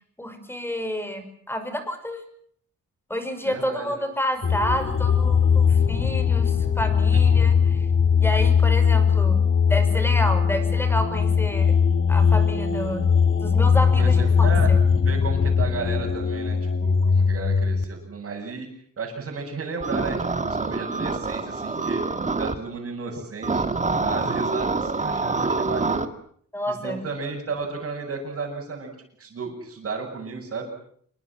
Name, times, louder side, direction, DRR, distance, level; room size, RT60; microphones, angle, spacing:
voice 1, 0.2-2.2 3.1-7.9 8.2-11.7 12.1-13.1 13.4-14.8 26.5-27.0, equal, 5° left, 8 dB, 5.7 m, -29 dB
voice 2, 3.4-3.9 14.0-14.7 15.0-18.7 19.0-22.0 22.4-26.0 26.7-28.9 29.2-30.7, right 4 dB, 50° right, -4 dB, 7.7 m, -33 dB
sound 1, 4.4-17.8, left 6 dB, 40° left, 1.9 m, -20 dB
sound 2, 19.8-22.6 23.4-26.1, right 3 dB, 25° right, 2.0 m, -26 dB
28.0 x 24.0 x 7.7 m, 0.64 s
wide cardioid pair, 135°, 31 cm